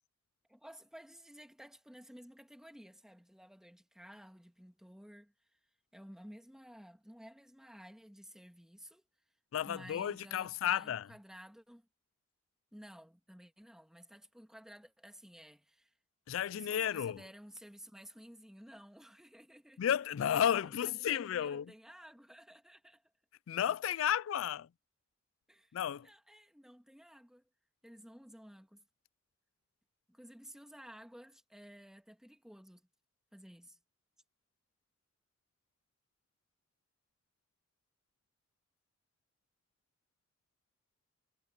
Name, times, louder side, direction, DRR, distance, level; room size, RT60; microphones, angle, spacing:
voice 1, 0.5-5.3 5.9-9.0 9.6-11.9 12.7-15.9 16.5-19.9 20.3-23.0 25.5-25.7 26.0-27.4 27.8-28.8 30.1-32.9 33.3-33.8, equal, 5° right, 1.9 m, -54 dB
voice 2, 9.5-11.1 16.3-17.2 19.8-21.7 23.5-24.7 25.7-26.1, left 9 dB, 85° left, 0.3 m, -32 dB
head